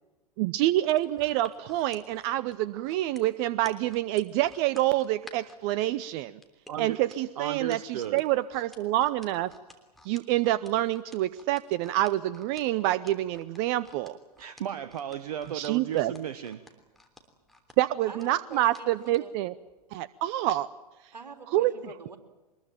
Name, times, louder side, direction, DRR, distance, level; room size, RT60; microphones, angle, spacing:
voice 1, 0.4-6.4 6.8-9.5 10.0-14.2 15.5-16.1 17.8-19.5 19.9-20.7 21.5-21.7, right 15 dB, 40° right, 18 dB, 0.7 m, -27 dB
sound 1, 0.8-5.6 6.4-19.2 19.7-19.8, left 1 dB, ahead, 3.3 m, -53 dB
voice 2, 6.7-7.0 7.4-8.2 14.4-16.6, right 9 dB, 60° right, 13 dB, 1.2 m, -35 dB
voice 3, 18.1-19.3 21.1-22.2, right 4 dB, 80° right, 6 dB, 3.5 m, -46 dB
23.5 x 21.0 x 9.1 m, 1.1 s
figure-of-eight pair, 100°, 21 cm